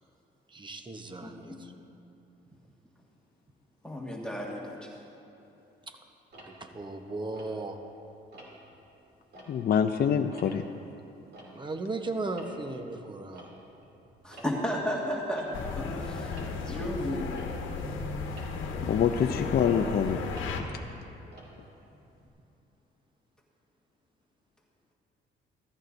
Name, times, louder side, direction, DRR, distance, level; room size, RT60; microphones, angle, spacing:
voice 1, 0.5-1.7 5.9-6.0 6.3-7.8 11.5-13.5, right 2 dB, 25° right, 6 dB, 1.0 m, -36 dB
voice 2, 1.2-1.6 3.8-4.9 14.2-17.5, equal, 5° left, -3 dB, 1.8 m, -34 dB
Tick-tock, 6.3-8.0 8.3-8.8 9.2-11.9 12.2-22.3, right 1 dB, 55° right, 2.8 m, -53 dB
voice 3, 9.5-10.6 18.8-20.2, left 8 dB, 50° left, 5 dB, 0.5 m, -25 dB
sound 1, 15.5-20.6, left 4 dB, 80° left, 1.2 m, -34 dB
16.5 x 13.5 x 2.6 m, 2.9 s
cardioid pair, 90°, 20 cm